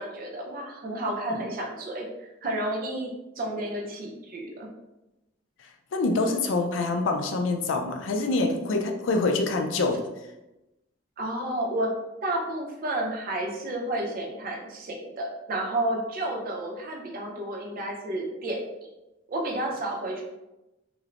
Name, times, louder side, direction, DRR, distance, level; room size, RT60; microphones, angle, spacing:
voice 1, 0.0-3.1 3.4-4.7 11.2-11.9 12.2-18.6 19.3-20.2, right 1 dB, 50° right, 0 dB, 0.5 m, -31 dB
voice 2, 5.9-10.0, left 3 dB, 70° left, 4 dB, 0.4 m, -25 dB
3.1 x 2.0 x 2.4 m, 0.96 s
head